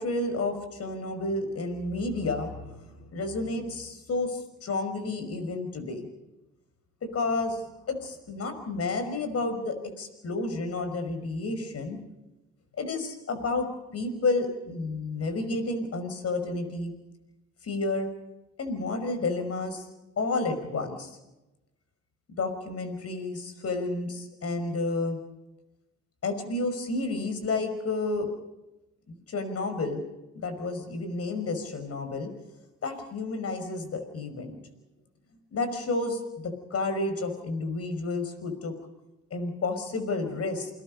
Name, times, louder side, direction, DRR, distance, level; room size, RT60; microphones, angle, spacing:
voice 1, 0.0-6.1 7.0-12.0 12.8-13.7 13.9-16.9 17.6-18.1 18.6-19.9 20.2-21.2 22.4-25.2 26.2-28.3 29.1-30.0 30.4-32.3 32.8-34.6 35.5-38.7 39.3-40.7, left 3 dB, 50° left, 7 dB, 5.6 m, -31 dB
28.0 x 22.0 x 5.5 m, 0.98 s
cardioid pair, 90°, 30 cm